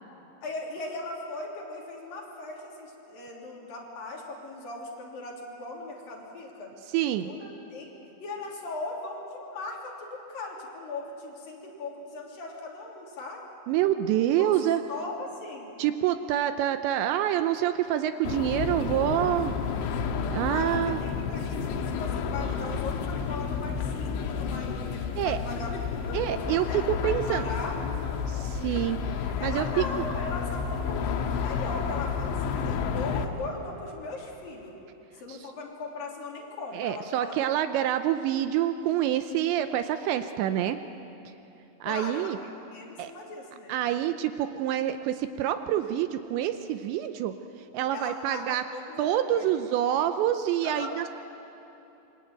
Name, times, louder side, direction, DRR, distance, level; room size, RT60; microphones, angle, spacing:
voice 1, 0.4-6.7 7.2-7.9 8.2-13.4 14.4-14.5 14.9-15.7 20.4-26.2 26.6-28.0 29.4-34.7 35.1-37.5 41.8-43.8 47.9-49.6 50.6-51.0, left 3 dB, 50° left, -1 dB, 4.6 m, -39 dB
voice 2, 6.9-7.3 13.7-14.8 15.8-19.5 20.3-21.0 25.2-25.4 26.1-27.4 28.3-29.9 36.7-40.8 41.8-42.4 43.0-43.1 43.7-47.3 47.7-48.6 49.0-51.1, right 11 dB, 80° right, 9 dB, 2.8 m, -27 dB
sound 1, 18.3-33.3, left 6 dB, 80° left, 3.5 m, -31 dB
27.0 x 24.5 x 8.9 m, 2.9 s
omnidirectional pair, 5.4 m